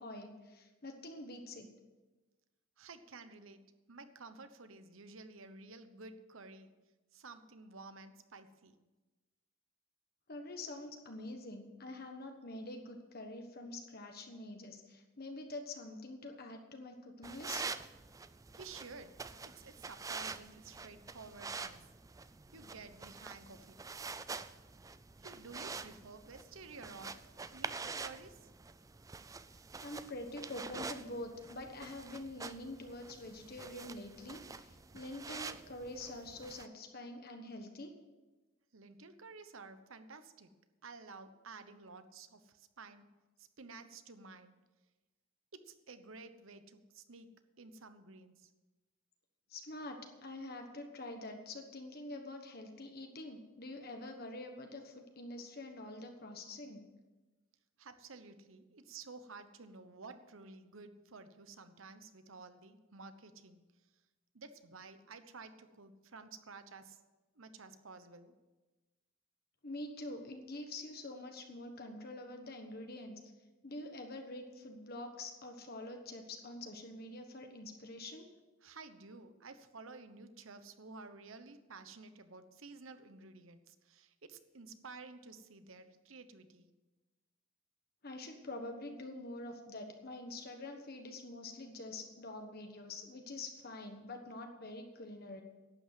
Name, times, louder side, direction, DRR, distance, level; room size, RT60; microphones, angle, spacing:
voice 1, 0.0-1.7 10.3-17.7 29.8-37.9 49.5-56.8 69.6-73.2 73.6-78.2 88.0-95.4, left 2 dB, 45° left, 4 dB, 1.2 m, -46 dB
voice 2, 2.8-3.6 3.9-6.7 7.1-8.8 18.5-19.2 19.4-21.9 22.5-23.8 25.2-27.2 27.5-28.5 38.7-40.5 40.8-44.5 45.5-47.3 47.6-48.5 57.8-63.6 64.3-67.0 67.3-68.3 78.6-86.7, right 4 dB, 75° right, 10 dB, 1.0 m, -52 dB
sound 1, 17.2-36.7, right 4 dB, 15° right, 0.3 m, -46 dB
11.5 x 8.7 x 7.6 m, 1.2 s
head